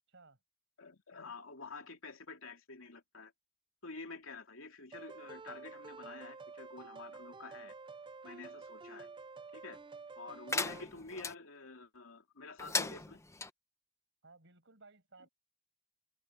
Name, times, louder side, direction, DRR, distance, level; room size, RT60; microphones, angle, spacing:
voice 1, 0.8-3.3 3.8-7.7 8.2-9.1 9.5-9.8 10.2-13.2, left 3 dB, 90° left, 3.0 m, -49 dB
sound 1, 4.9-10.8, right 4 dB, 25° right, 0.5 m, -50 dB
sound 2, 10.5-11.3 12.6-13.5, left 4 dB, 15° left, 0.7 m, -37 dB
voice 2, 14.2-15.3, right 3 dB, 65° right, 5.7 m, -59 dB
head